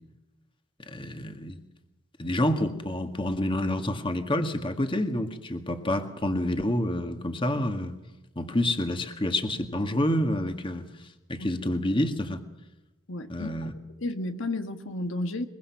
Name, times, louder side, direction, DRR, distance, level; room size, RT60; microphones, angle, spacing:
voice 1, 0.9-1.6 2.2-7.9 8.4-10.9 11.3-12.4 13.3-13.7, left 1 dB, 25° left, 1.9 m, -28 dB
voice 2, 13.1-13.5 14.0-15.4, left 2 dB, 70° left, 1.6 m, -32 dB
23.0 x 23.0 x 5.9 m
head